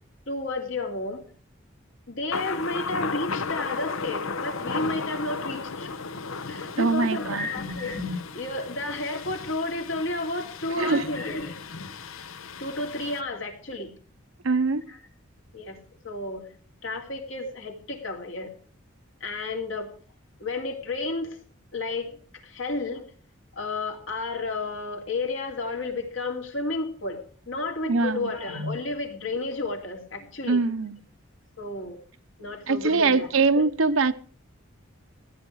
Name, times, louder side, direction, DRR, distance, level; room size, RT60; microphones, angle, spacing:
voice 1, 0.3-1.2 2.1-5.9 6.5-11.6 12.6-13.9 14.9-15.0 15.5-16.5 16.8-18.5 19.2-19.9 20.4-21.4 21.7-22.2 22.4-23.0 23.5-30.6 31.6-32.0 32.4-33.3 33.5-33.6, left 2 dB, 70° left, 2.8 m, -32 dB
Thunder, 2.3-13.2, left 4 dB, 85° left, 0.9 m, -35 dB
voice 2, 6.8-7.5 10.8-11.0 14.4-14.8 27.8-28.3 30.5-31.0 32.7-34.1, right 4 dB, 80° right, 0.8 m, -23 dB
14.5 x 10.5 x 4.7 m
head